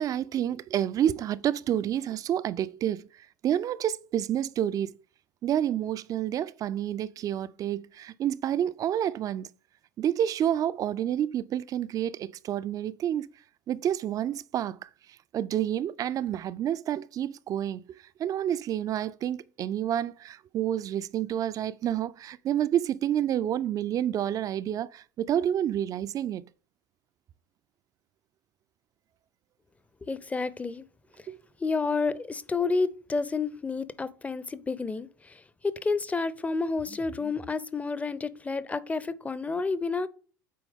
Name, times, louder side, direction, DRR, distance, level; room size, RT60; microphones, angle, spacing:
voice 1, 0.0-3.0 3.4-4.9 5.4-9.5 10.0-13.3 13.7-14.9 15.3-17.8 18.2-26.4 31.3-31.4, right 10 dB, 40° right, 0.4 m, -29 dB
voice 2, 30.0-30.8 31.6-40.1, left 4 dB, 15° left, 0.6 m, -30 dB
8.4 x 4.5 x 3.6 m
hypercardioid pair, 75°, 10 cm